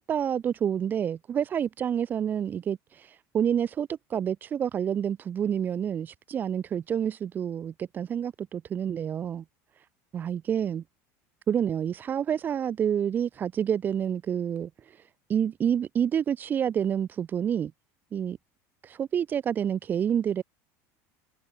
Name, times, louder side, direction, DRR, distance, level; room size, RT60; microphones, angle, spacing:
voice 1, 0.0-9.4 10.1-10.8 11.5-15.0 15.3-17.7 18.1-18.4 18.8-20.4, right 8 dB, 25° right, 6.2 m, -28 dB
cardioid pair, 175°, 8 cm